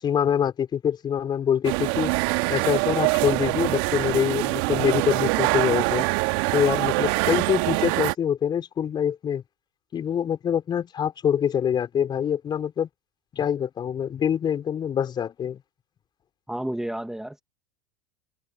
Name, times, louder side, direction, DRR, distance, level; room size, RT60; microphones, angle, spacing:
voice 1, 0.0-2.1 2.5-6.1 6.5-9.4 9.9-12.9 13.3-15.6, left 8 dB, 30° left, 5.5 m, -25 dB
sound 1, 1.6-8.1, right 29 dB, 60° right, 2.1 m, -24 dB
voice 2, 16.5-17.4, right 1 dB, 5° right, 1.9 m, -31 dB
hypercardioid pair, 90°, 14 cm